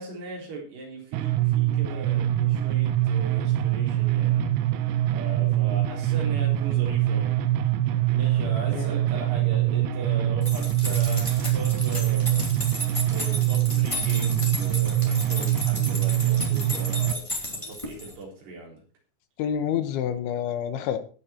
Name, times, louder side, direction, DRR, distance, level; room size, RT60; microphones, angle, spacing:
voice 1, 0.0-4.5 5.1-7.4 8.1-12.4 13.1-18.8, right 3 dB, 65° right, -1 dB, 5.9 m, -39 dB
sound 1, 1.1-17.1, right 13 dB, 80° right, 2.9 m, -24 dB
sound 2, 10.4-18.2, left 1 dB, 10° left, 1.9 m, -34 dB
voice 2, 19.4-21.0, left 9 dB, 80° left, 9 dB, 3.5 m, -27 dB
19.0 x 6.6 x 4.4 m, 0.39 s
omnidirectional pair, 5.3 m